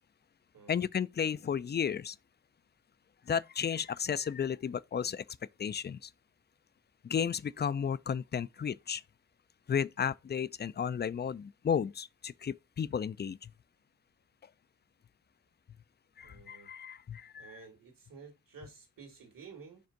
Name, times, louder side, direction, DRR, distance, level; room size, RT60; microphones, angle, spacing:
voice 1, 0.7-2.2 3.3-5.2 5.6-6.1 7.0-9.0 9.7-13.5 16.2-17.6, left 7 dB, 30° left, 0.4 m, -33 dB
voice 2, 16.2-16.7 17.4-19.8, right 5 dB, 70° right, 2.2 m, -52 dB
5.3 x 3.4 x 5.1 m
supercardioid pair, 45°, 34 cm